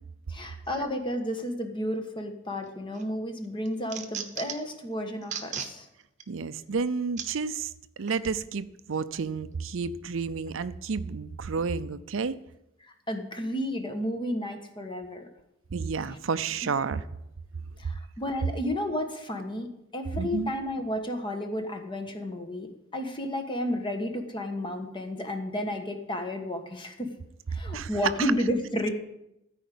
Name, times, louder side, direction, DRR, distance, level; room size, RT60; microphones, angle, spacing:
voice 1, 0.3-5.9 12.8-15.3 17.8-27.1 27.5-28.9, left 1 dB, 25° left, 5 dB, 1.3 m, -32 dB
sound 1, 2.6-3.1 3.4-4.7 5.2-5.7 6.2-6.3 7.2-7.3 8.1-8.2, right 7 dB, 40° right, 1.0 m, -36 dB
voice 2, 6.3-7.7 8.0-12.4 15.7-17.0 20.2-20.5 27.7-27.9 28.2-28.3, right 5 dB, 75° right, 13 dB, 0.5 m, -31 dB
13.5 x 5.0 x 8.4 m, 0.85 s
head